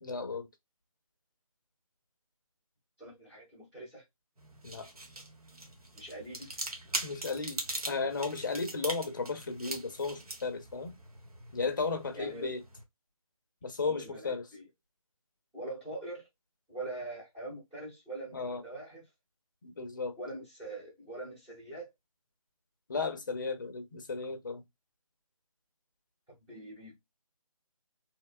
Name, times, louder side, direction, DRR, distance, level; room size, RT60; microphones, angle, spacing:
voice 1, 0.0-0.5 4.6-4.9 7.0-10.9 11.5-12.6 13.6-14.4 18.3-18.6 19.6-20.2 22.9-24.6, left 4 dB, 35° left, 0.5 m, -34 dB
voice 2, 3.0-4.0 5.9-6.6 12.1-12.6 13.8-14.7 15.5-16.3 16.7-19.0 20.2-21.9 26.3-27.0, right 2 dB, 5° right, 0.6 m, -43 dB
sound 1, 4.4-12.8, right 2 dB, 80° right, 0.9 m, -42 dB
2.9 x 2.2 x 2.4 m
figure-of-eight pair, 160°, 19 cm